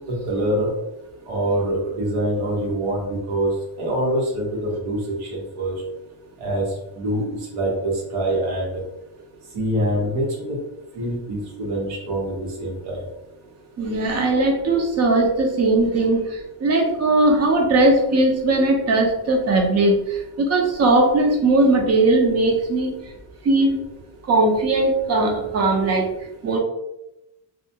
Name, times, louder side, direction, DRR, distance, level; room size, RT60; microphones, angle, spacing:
voice 1, 0.1-0.7 1.3-3.5 3.8-5.7 6.4-6.6 7.0-8.7 9.5-10.6 10.9-13.0, right 1 dB, 85° right, -3 dB, 1.0 m, -25 dB
voice 2, 13.8-16.3 16.6-22.9 23.4-23.7 24.3-26.1 26.4-26.6, right 2 dB, 35° right, 2 dB, 0.5 m, -19 dB
2.4 x 2.2 x 2.7 m, 0.91 s
cardioid pair, 135°, 48 cm